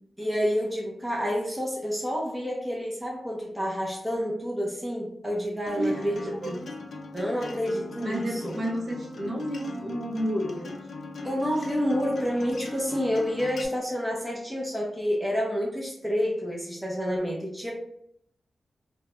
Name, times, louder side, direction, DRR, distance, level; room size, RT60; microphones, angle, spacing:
voice 1, 0.2-6.6 7.1-8.6 11.2-17.7, equal, 5° right, -3 dB, 0.6 m, -29 dB
Acoustic guitar, 5.7-13.6, left 2 dB, 65° left, 0.4 m, -40 dB
voice 2, 5.8-6.5 7.4-7.7 8.0-10.7, equal, 50° right, -3 dB, 0.6 m, -31 dB
2.3 x 2.1 x 2.9 m, 0.69 s
wide cardioid pair, 130°, 0 cm